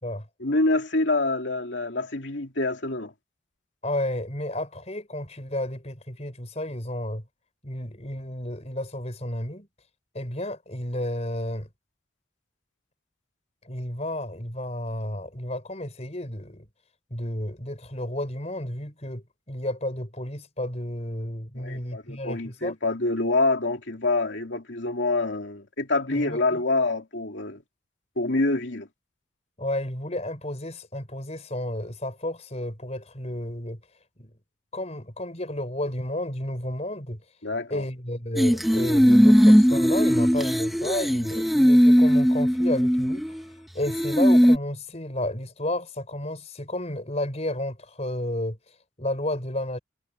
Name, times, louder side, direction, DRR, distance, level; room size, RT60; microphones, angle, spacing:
voice 1, 0.4-3.1 21.5-27.6 28.2-28.9 37.4-37.9, left 2 dB, 65° left, 2.6 m, -26 dB
voice 2, 3.8-7.2 7.6-9.7 10.1-11.7 13.6-16.7 17.1-22.7 26.1-26.6 29.6-33.8 34.2-34.3 34.7-37.2 37.7-49.8, left 1 dB, 35° left, 5.2 m, -32 dB
sound 1, 38.4-43.5 43.9-44.6, equal, ahead, 1.2 m, -19 dB
head